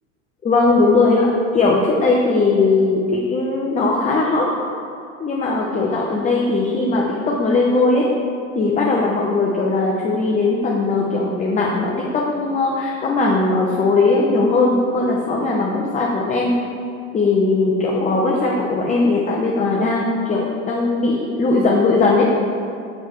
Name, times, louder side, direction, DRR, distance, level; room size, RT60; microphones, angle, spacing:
voice 1, 0.4-3.0 3.3-4.5 5.2-8.1 8.5-16.5 17.1-22.3, left 3 dB, 20° left, -3 dB, 0.7 m, -19 dB
6.3 x 6.2 x 3.1 m, 2.5 s
hypercardioid pair, 90°, 39 cm